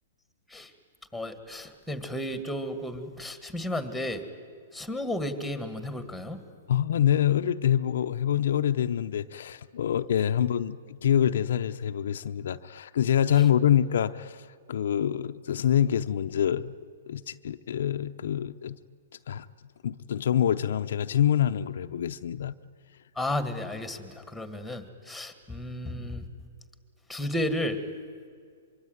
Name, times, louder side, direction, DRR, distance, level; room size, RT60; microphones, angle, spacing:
voice 1, 1.1-4.2 4.7-6.4 23.2-26.2 27.1-27.8, left 1 dB, ahead, 1.9 m, -33 dB
voice 2, 6.7-14.4 14.7-16.7 17.1-18.8 19.3-19.5 19.8-22.5, left 10 dB, 70° left, 0.7 m, -26 dB
24.0 x 23.5 x 9.5 m
hypercardioid pair, 150°, 0 cm